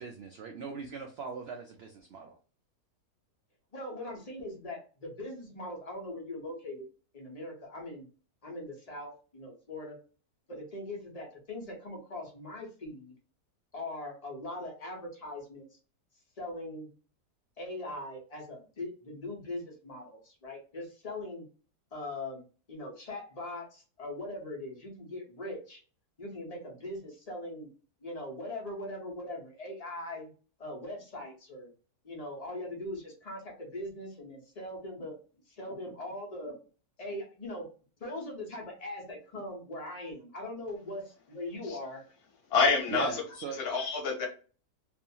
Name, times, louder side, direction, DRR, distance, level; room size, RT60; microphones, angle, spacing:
voice 1, 0.0-2.4 42.9-43.6, right 5 dB, 90° right, 3 dB, 0.5 m, -39 dB
voice 2, 3.7-6.9 7.1-8.1 8.4-10.0 10.5-13.1 13.7-15.8 16.4-16.9 17.6-21.4 21.9-25.8 26.2-27.7 28.0-30.3 30.6-31.7 32.0-35.2 35.5-36.5 37.0-37.6 38.0-42.0, left 1 dB, 30° left, -1 dB, 0.7 m, -41 dB
voice 3, 42.5-43.1 43.6-44.3, left 4 dB, 70° left, 3 dB, 1.2 m, -27 dB
2.7 x 2.4 x 2.7 m, 0.37 s
omnidirectional pair, 1.6 m